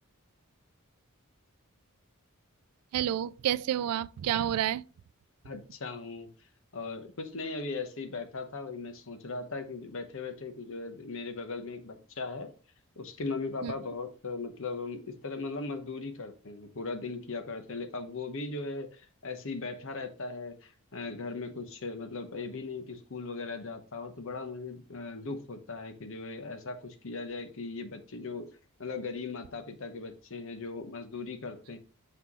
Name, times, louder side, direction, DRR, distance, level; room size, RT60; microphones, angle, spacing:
voice 1, 2.9-4.8 13.6-13.7, right 11 dB, 85° right, 0.3 m, -29 dB
voice 2, 5.4-6.3 6.7-12.5 13.0-28.5 28.8-31.8, left 3 dB, 60° left, 1.0 m, -38 dB
6.0 x 5.7 x 3.0 m
head